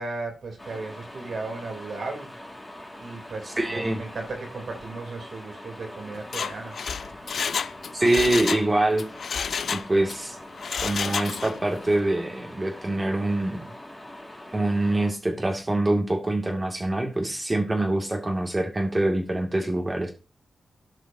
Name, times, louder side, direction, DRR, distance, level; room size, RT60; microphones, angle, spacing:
voice 1, 0.0-2.3 3.0-6.8, right 3 dB, 70° right, 2 dB, 3.1 m, -35 dB
sound 1, 0.6-15.1, left 1 dB, 10° left, 3.5 m, -43 dB
voice 2, 3.6-4.0 7.9-9.0 9.7-10.4 10.8-13.6 14.5-20.1, right 1 dB, 25° right, 2 dB, 2.2 m, -25 dB
Mechanisms, 6.2-8.7 9.0-10.2 10.6-11.6 11.9-12.0, left 6 dB, 75° left, 0.3 m, -30 dB
14.0 x 5.0 x 2.7 m, 0.33 s
cardioid pair, 50°, 0 cm